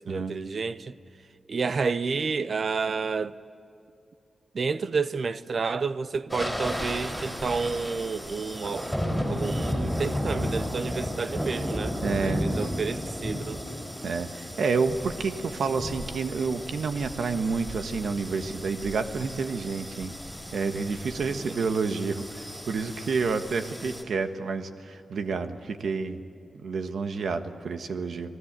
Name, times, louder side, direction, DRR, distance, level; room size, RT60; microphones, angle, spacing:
voice 1, 0.0-0.9 1.5-3.4 4.5-13.6 21.4-21.7, right 4 dB, 50° right, 0.7 m, -30 dB
sound 1, 6.3-24.0, equal, ahead, 3.8 m, -34 dB
voice 2, 12.0-12.5 14.0-20.1 20.5-26.2 26.6-28.4, right 4 dB, 90° right, 1.4 m, -29 dB
30.0 x 19.5 x 8.9 m
wide cardioid pair, 165°, 0 cm